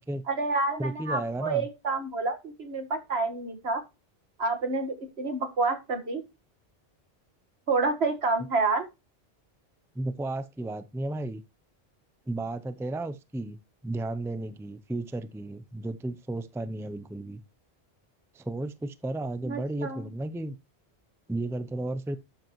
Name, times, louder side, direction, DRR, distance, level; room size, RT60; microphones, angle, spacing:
voice 1, 0.3-3.8 4.4-6.2 7.7-8.9 19.4-20.1, right 3 dB, 80° right, 2.0 m, -28 dB
voice 2, 0.8-1.7 9.9-11.4 12.3-13.6 13.8-17.4 18.3-20.6 21.3-22.2, right 2 dB, 5° right, 0.5 m, -33 dB
12.0 x 7.9 x 3.1 m
omnidirectional pair, 1.1 m